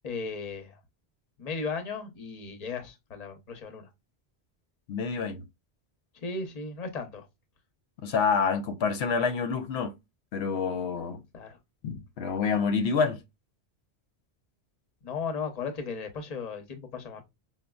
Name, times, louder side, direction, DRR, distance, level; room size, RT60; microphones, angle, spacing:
voice 1, 0.0-0.8 1.4-3.9 6.2-7.3 11.3-11.5 15.0-17.2, left 4 dB, 45° left, 0.8 m, -36 dB
voice 2, 4.9-5.4 8.0-9.9 10.3-11.2 11.8-13.2, left 5 dB, 85° left, 0.8 m, -27 dB
5.1 x 2.2 x 2.2 m
omnidirectional pair, 1.1 m